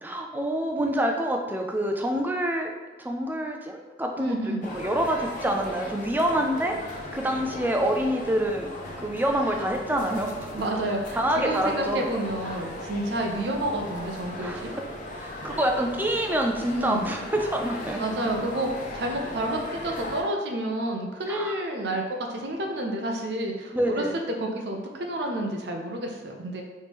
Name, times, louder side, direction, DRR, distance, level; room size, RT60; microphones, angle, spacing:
voice 1, 0.0-2.7 3.0-4.4 4.6-6.8 7.1-8.7 9.0-10.5 11.1-12.0 14.4-14.7 15.2-18.0 21.3-21.5 23.7-24.1, right 1 dB, 10° right, 3 dB, 0.4 m, -26 dB
voice 2, 4.2-4.6 10.5-14.7 16.8-17.1 18.0-24.0 24.4-26.6, right 1 dB, 65° right, 2 dB, 0.6 m, -30 dB
sound 1, 4.6-20.2, left 1 dB, 45° left, 0.6 m, -38 dB
4.2 x 3.2 x 3.4 m, 1.2 s
head